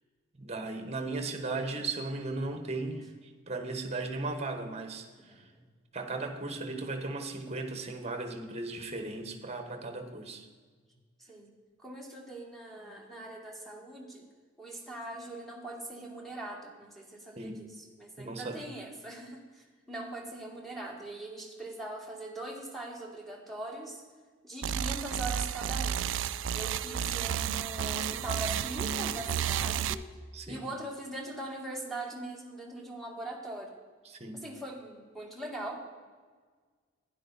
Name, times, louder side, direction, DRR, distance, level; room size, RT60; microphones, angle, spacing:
voice 1, 0.4-3.0 3.5-5.4 5.9-10.5 17.4-17.6 18.2-18.6 30.3-30.7 34.0-34.4, right 3 dB, 35° right, 6 dB, 1.2 m, -36 dB
voice 2, 1.3-1.8 2.4-3.0 5.3-5.6 8.8-9.1 9.8-10.0 11.2-11.5 11.8-14.3 14.6-24.0 24.4-26.0 26.5-30.1 30.5-33.8 34.3-35.8, right 2 dB, ahead, -1 dB, 1.8 m, -41 dB
sound 1, 24.6-29.9, right 9 dB, 65° right, 0.4 m, -32 dB
12.0 x 10.0 x 4.1 m, 1.5 s
head